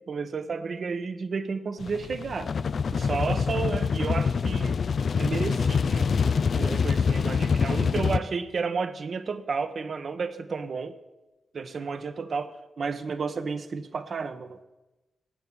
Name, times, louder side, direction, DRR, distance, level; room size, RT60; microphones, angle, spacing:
voice 1, 0.1-2.5 2.9-4.8 5.2-6.1 6.5-11.0 11.5-14.6, right 5 dB, 60° right, 9 dB, 1.3 m, -32 dB
sound 1, 1.8-8.2, left 5 dB, 60° left, 0.5 m, -25 dB
18.0 x 7.3 x 8.2 m, 1.1 s
cardioid pair, 80°, 0 cm